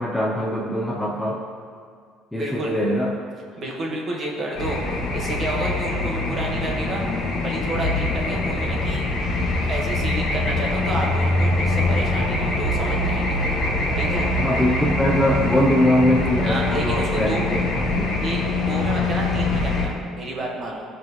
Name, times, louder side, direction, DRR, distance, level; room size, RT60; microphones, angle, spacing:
voice 1, 0.0-1.4 2.3-3.2 14.4-17.4 18.0-18.1, equal, 5° left, -3 dB, 0.6 m, -22 dB
voice 2, 2.4-2.7 3.6-7.1 7.4-9.0 9.7-13.4 14.0-14.3 16.4-17.4 18.2-20.8, right 1 dB, 30° right, -1 dB, 1.5 m, -30 dB
sound 1, 4.6-19.9, left 2 dB, 50° left, 2.0 m, -23 dB
16.5 x 5.7 x 3.1 m, 2.1 s
cardioid pair, 175°, 0 cm